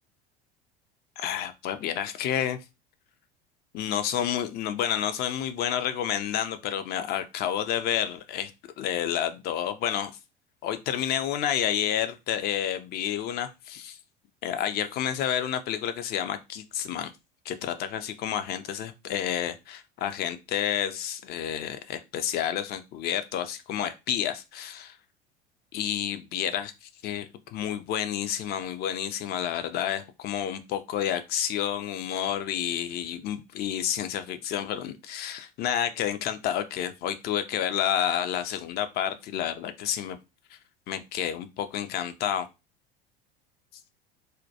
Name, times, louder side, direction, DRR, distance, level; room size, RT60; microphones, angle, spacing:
voice 1, 1.2-2.6 3.7-8.5 8.8-10.1 10.6-14.0 14.4-17.1 17.5-25.0 25.7-40.2 40.9-42.5, left 10 dB, 35° left, 10 dB, 0.4 m, -30 dB
2.2 x 2.1 x 2.7 m, 0.25 s
figure-of-eight pair, 70°, 29 cm